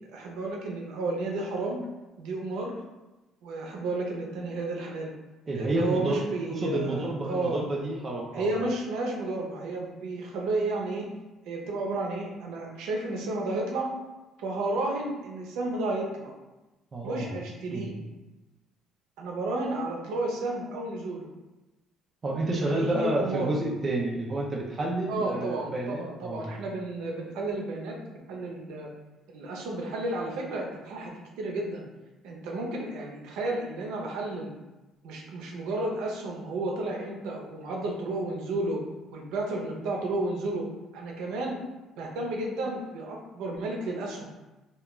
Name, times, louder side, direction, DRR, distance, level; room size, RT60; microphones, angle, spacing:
voice 1, 0.1-1.8 2.2-2.7 3.4-5.1 5.5-7.6 8.3-11.1 11.4-13.9 14.4-16.3 17.0-18.0 19.2-21.3 22.8-23.5 25.1-28.9 29.3-31.9 32.2-34.5 35.0-38.8 39.1-40.7 40.9-41.6 42.0-44.3, right 2 dB, 90° right, -1 dB, 0.5 m, -32 dB
voice 2, 5.5-8.5 16.9-17.3 17.7-17.9 22.2-26.5, right 2 dB, 25° right, -2 dB, 0.4 m, -30 dB
2.2 x 2.2 x 2.9 m, 1.1 s
cardioid pair, 160°, 0 cm